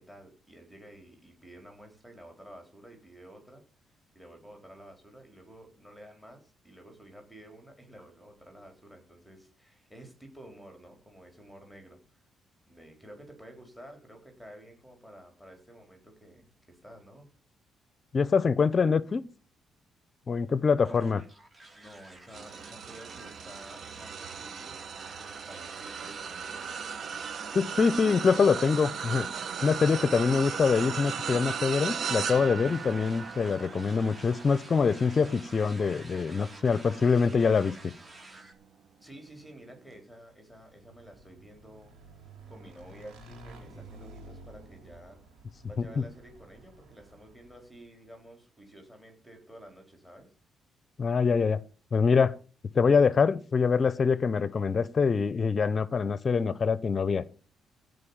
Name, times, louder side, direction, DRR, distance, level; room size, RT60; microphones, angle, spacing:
voice 1, 0.0-12.2 12.7-17.3 20.8-21.1 21.7-26.7 39.0-41.9 42.5-45.2 45.6-50.3, right 1 dB, ahead, 4.1 m, -51 dB
voice 2, 18.1-19.2 20.3-21.2 27.5-29.3 29.6-37.9 45.8-45.9 51.0-51.6 51.9-52.3 52.7-57.3, left 5 dB, 40° left, 0.7 m, -24 dB
sound 1, 20.8-38.5, right 2 dB, 25° right, 2.5 m, -50 dB
sound 2, 22.3-37.8 38.4-38.6 39.9-40.0, right 6 dB, 60° right, 0.9 m, -37 dB
Motorcycle / Engine, 40.5-47.9, right 2 dB, 85° right, 4.2 m, -51 dB
16.0 x 5.4 x 7.1 m
cardioid pair, 90°, 0 cm